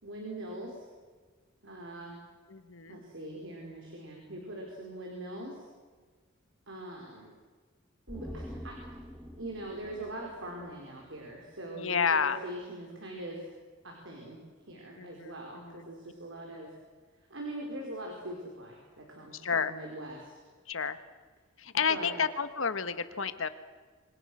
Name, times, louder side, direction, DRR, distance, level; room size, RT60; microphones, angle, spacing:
voice 1, 0.0-0.9 1.6-2.2 2.9-5.6 6.7-7.3 8.1-8.8 9.4-13.5 13.8-14.4 14.7-16.7 17.3-20.3 21.9-22.2, right 1 dB, 60° right, 0 dB, 5.0 m, -42 dB
voice 2, 2.5-3.0 11.7-12.4 15.0-15.8 19.3-19.7 20.7-21.0 21.6-23.5, left 6 dB, 65° left, 11 dB, 1.5 m, -30 dB
sound 1, 8.1-11.5 11.8-11.9, equal, ahead, 2.0 m, -46 dB
28.0 x 25.5 x 6.4 m, 1.4 s
head